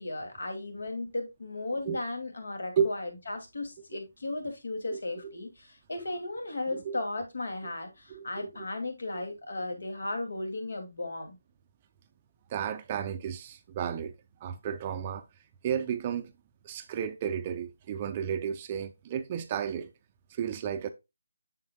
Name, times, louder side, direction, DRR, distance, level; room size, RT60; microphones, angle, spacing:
voice 1, 0.0-11.4, left 2 dB, 75° left, 2.4 m, -36 dB
voice 2, 4.9-5.3 6.7-7.0 8.1-8.3 12.5-14.1 14.4-15.2 15.6-16.3 16.6-19.9 20.3-20.9, right 8 dB, 20° right, 0.5 m, -32 dB
7.5 x 6.5 x 2.2 m
figure-of-eight pair, 170°, 0 cm